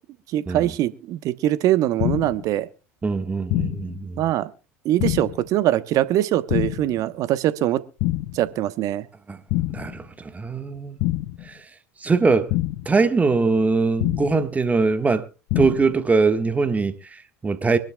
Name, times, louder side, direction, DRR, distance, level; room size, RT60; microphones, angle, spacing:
voice 1, 0.3-2.7 4.2-4.5 4.8-7.8 8.3-9.1, right 13 dB, 50° right, 1.1 m, -22 dB
sound 1, 2.0-2.5 3.5-4.0 5.0-5.5 6.5-7.0 8.0-8.5 9.5-10.0 11.0-11.5 12.5-13.0 14.0-14.5 15.5-16.0, left 17 dB, 60° left, 0.6 m, -25 dB
voice 2, 3.0-4.2 9.3-9.4 9.7-11.0 11.4-11.6 12.0-12.5 12.8-15.3 15.5-17.8, right 4 dB, 20° right, 1.5 m, -22 dB
24.5 x 12.0 x 2.3 m
figure-of-eight pair, 70°, 7 cm